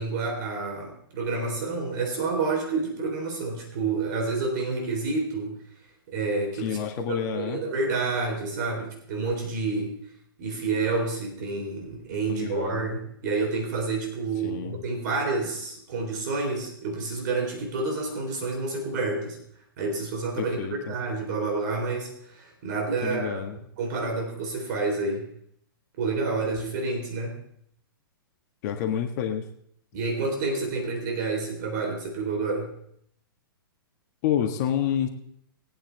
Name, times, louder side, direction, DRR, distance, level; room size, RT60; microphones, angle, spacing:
voice 1, 0.0-5.6 6.1-10.0 10.4-19.4 19.8-23.4 23.8-25.3 26.0-27.3 29.9-32.7, right 3 dB, 50° right, 2 dB, 3.7 m, -29 dB
voice 2, 6.5-7.6 12.3-12.9 14.4-14.8 20.4-20.9 23.0-23.6 28.6-29.4 34.2-35.1, left 9 dB, 45° left, 4 dB, 1.5 m, -28 dB
21.0 x 8.8 x 3.4 m, 0.68 s
figure-of-eight pair, 115°, 12 cm